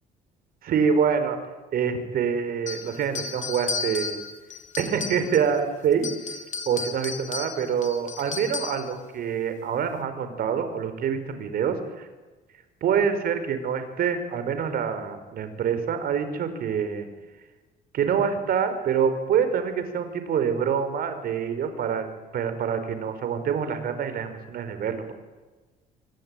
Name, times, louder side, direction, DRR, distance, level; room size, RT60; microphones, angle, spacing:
voice 1, 0.6-1.4 1.7-4.2 4.8-6.1 6.7-12.1 12.8-17.1 17.9-22.1 22.3-25.1, right 7 dB, 60° right, 9 dB, 5.2 m, -26 dB
sound 1, 2.7-5.6 5.9-8.9, left 5 dB, 45° left, 3.3 m, -34 dB
26.0 x 24.0 x 9.3 m, 1.2 s
cardioid pair, 110°, 17 cm